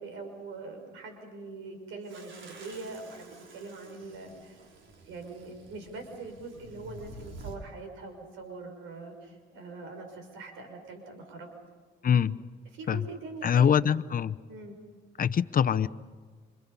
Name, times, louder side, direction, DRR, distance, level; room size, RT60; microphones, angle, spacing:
voice 1, 0.0-4.6 5.0-11.5 12.3-12.4 12.7-13.8 14.5-14.8, right 3 dB, 90° right, 5 dB, 5.9 m, -43 dB
sound 1, 2.0-7.6, right 2 dB, 75° right, 4.8 m, -49 dB
voice 2, 12.0-12.4 12.9-13.0 13.4-14.4 15.2-15.9, left 8 dB, 45° left, 12 dB, 0.8 m, -24 dB
29.0 x 27.5 x 5.5 m, 1.5 s
cardioid pair, 90°, 20 cm